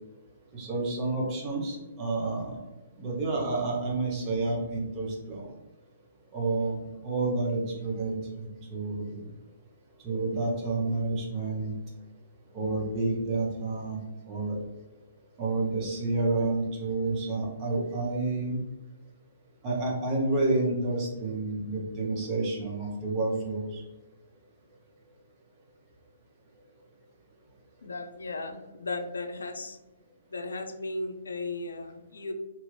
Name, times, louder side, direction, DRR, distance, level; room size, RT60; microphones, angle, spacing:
voice 1, 0.5-2.6 3.0-5.5 6.3-9.3 10.0-11.7 12.5-14.0 14.3-14.6 15.4-18.6 19.6-23.8, right 3 dB, 30° right, -3 dB, 1.0 m, -29 dB
voice 2, 27.8-29.8 30.3-32.3, left 2 dB, 85° left, 7 dB, 0.4 m, -36 dB
2.9 x 2.5 x 3.1 m, 1.0 s
hypercardioid pair, 135°, 0 cm